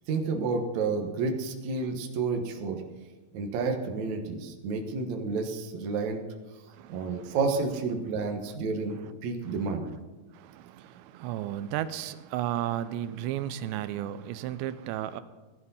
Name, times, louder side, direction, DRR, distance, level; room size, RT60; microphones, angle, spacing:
voice 1, 0.1-2.8 3.3-6.2 6.9-9.0 9.2-9.9, right 4 dB, 65° right, 3 dB, 1.9 m, -30 dB
voice 2, 6.7-7.4 10.3-15.2, right 12 dB, 90° right, 12 dB, 2.9 m, -34 dB
16.5 x 12.0 x 5.6 m, 1.2 s
omnidirectional pair, 4.9 m